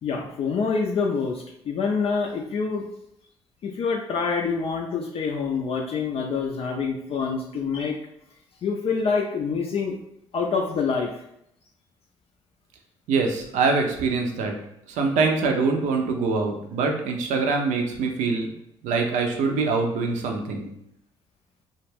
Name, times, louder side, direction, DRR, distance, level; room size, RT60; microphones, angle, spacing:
voice 1, 0.0-2.8 3.6-8.0 8.6-9.9 10.3-11.2, left 5 dB, 45° left, 1 dB, 0.4 m, -26 dB
voice 2, 13.1-14.5 14.9-18.5 18.8-20.7, right 4 dB, 65° right, 3 dB, 0.5 m, -24 dB
2.3 x 2.1 x 3.2 m, 0.76 s
hypercardioid pair, 50°, 13 cm